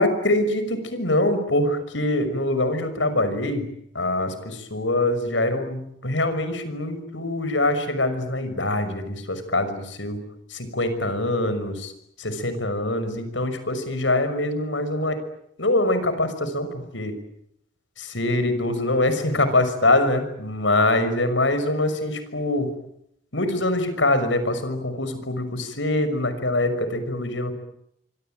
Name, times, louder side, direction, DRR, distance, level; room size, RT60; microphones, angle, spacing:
voice 1, 0.0-3.7 3.9-10.2 10.5-11.9 12.2-15.2 15.6-17.2 18.0-22.7 23.3-27.5, left 1 dB, 85° left, 11 dB, 6.0 m, -24 dB
26.0 x 25.0 x 9.1 m, 0.75 s
head